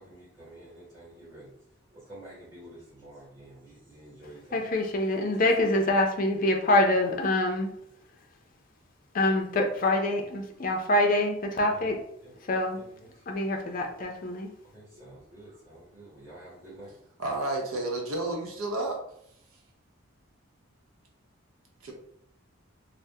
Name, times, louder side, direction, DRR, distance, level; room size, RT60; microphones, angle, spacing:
voice 1, 0.0-1.6 1.9-4.6 9.3-9.5 10.3-10.5 11.6-11.8 12.2-12.3 12.7-13.3 14.7-16.9, right 1 dB, 15° right, -10 dB, 1.4 m, -49 dB
voice 2, 4.5-7.7 9.1-12.0 12.5-12.8 13.3-14.5, left 1 dB, 40° left, 2 dB, 0.4 m, -25 dB
voice 3, 17.2-19.0 21.8-21.9, right 2 dB, 80° right, 0 dB, 0.8 m, -31 dB
2.7 x 2.1 x 3.4 m, 0.70 s
head